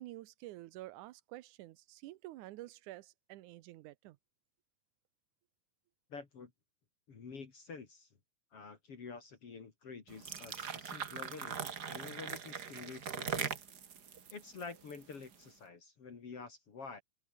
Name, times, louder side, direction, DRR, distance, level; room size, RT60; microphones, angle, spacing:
voice 1, 0.0-4.2, right 16 dB, 85° right, 2.3 m, -49 dB
voice 2, 6.1-6.5 7.1-8.1 8.5-13.5 14.3-17.0, left 5 dB, 50° left, 3.7 m, -48 dB
sound 1, 10.1-15.4, right 7 dB, 40° right, 1.7 m, -41 dB
omnidirectional pair, 3.5 m